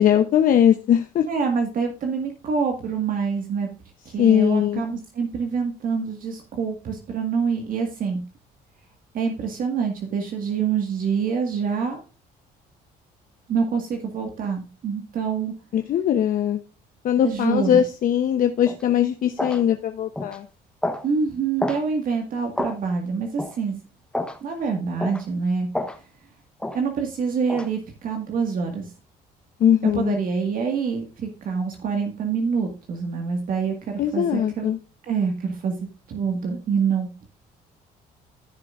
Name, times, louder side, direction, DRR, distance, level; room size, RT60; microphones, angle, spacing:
voice 1, 0.0-1.3 4.2-4.8 15.7-16.6 17.0-20.5 29.6-30.2 34.0-34.8, left 9 dB, 55° left, 6 dB, 0.9 m, -20 dB
voice 2, 1.3-3.7 4.1-8.2 9.1-12.0 13.5-15.5 17.2-17.8 21.0-23.8 24.4-25.7 26.7-28.9 29.9-34.7 35.1-35.7 36.1-37.1, right 5 dB, 55° right, 3 dB, 1.8 m, -26 dB
sound 1, 18.7-18.8 19.4-19.6 20.2-20.4 20.8-21.1 21.6-21.8 22.6-22.8 23.4-23.6 24.1-24.4 25.0-25.2 25.7-26.0 26.6-26.8 27.5-27.7, left 1 dB, 5° left, 1.0 m, -28 dB
14.0 x 6.8 x 2.5 m, 0.32 s
cardioid pair, 110°, 17 cm